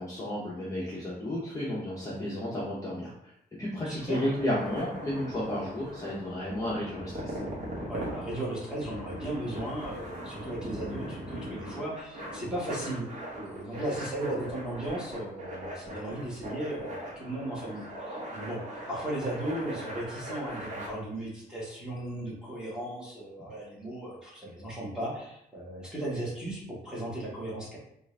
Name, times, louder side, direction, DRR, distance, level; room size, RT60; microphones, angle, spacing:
voice 1, 0.0-3.3 3.6-7.4, left 1 dB, 20° left, -7 dB, 0.7 m, -32 dB
voice 2, 3.8-4.2 7.9-18.6 18.9-27.8, right 1 dB, 5° right, -7 dB, 1.4 m, -36 dB
sound 1, 3.9-20.9, equal, 45° right, 1.2 m, -40 dB
3.7 x 2.5 x 3.2 m, 0.76 s
wide cardioid pair, 145°, 17 cm